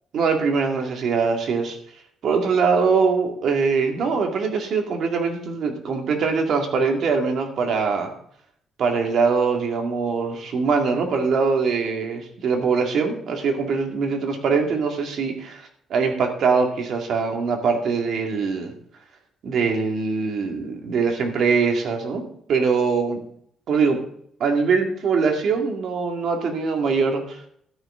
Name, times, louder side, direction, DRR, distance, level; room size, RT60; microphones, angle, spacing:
voice 1, 0.1-1.8 2.2-8.1 8.8-15.6 15.9-18.7 19.4-22.2 22.5-23.2 23.7-24.0 24.4-27.4, right 5 dB, 65° right, 3 dB, 2.4 m, -22 dB
13.0 x 9.9 x 3.9 m, 0.66 s
cardioid pair, 90°, 0 cm